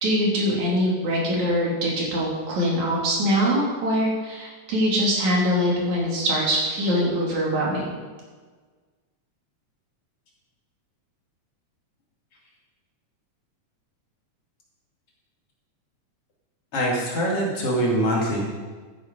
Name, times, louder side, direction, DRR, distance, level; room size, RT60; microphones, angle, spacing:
voice 1, 0.0-8.0, equal, 70° right, -3 dB, 4.2 m, -23 dB
voice 2, 16.7-18.4, right 1 dB, 50° left, -3 dB, 3.4 m, -23 dB
12.5 x 9.9 x 5.4 m, 1.4 s
omnidirectional pair, 3.5 m